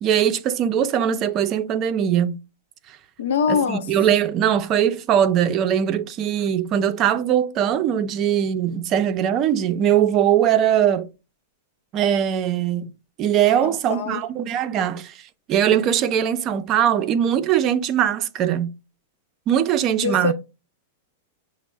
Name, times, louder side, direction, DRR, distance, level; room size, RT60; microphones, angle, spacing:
voice 1, 0.0-2.4 2.9-3.0 3.5-11.1 11.9-12.9 13.2-18.7 19.5-20.3, right 9 dB, 35° right, 0.4 m, -21 dB
voice 2, 3.2-3.8 13.6-14.2 20.0-20.3, left 6 dB, 80° left, 0.7 m, -23 dB
6.0 x 2.0 x 3.3 m
hypercardioid pair, 135°, 0 cm